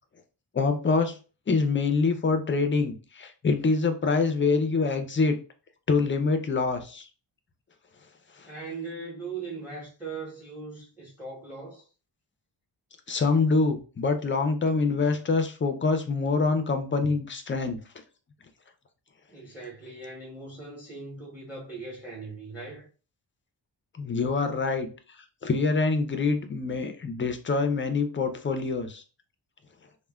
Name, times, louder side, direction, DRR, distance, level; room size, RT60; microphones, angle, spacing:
voice 1, 0.5-1.1 1.5-5.4 5.9-7.1 13.1-17.8 24.0-24.9 25.4-29.0, left 4 dB, 30° left, 0.4 m, -25 dB
voice 2, 8.4-11.8 19.3-22.9, right 3 dB, 5° right, 0.7 m, -39 dB
3.2 x 2.1 x 2.2 m
wide cardioid pair, 105°, 47 cm